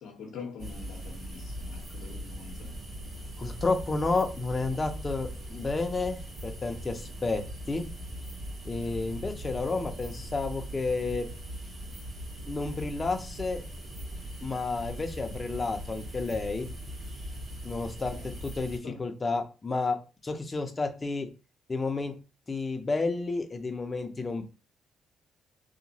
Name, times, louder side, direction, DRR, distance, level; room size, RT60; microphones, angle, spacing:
voice 1, 0.0-2.7 18.1-18.3 18.8-19.0, left 5 dB, 80° left, 0.6 m, -44 dB
sound 1, 0.6-18.8, equal, 50° right, 1.4 m, -40 dB
voice 2, 3.4-7.8 8.7-11.3 12.5-13.6 14.4-16.7 17.6-20.0 20.2-21.3 21.7-22.1 22.5-24.4, left 3 dB, 25° left, 0.5 m, -31 dB
2.8 x 2.2 x 2.7 m
cardioid pair, 90°, 0 cm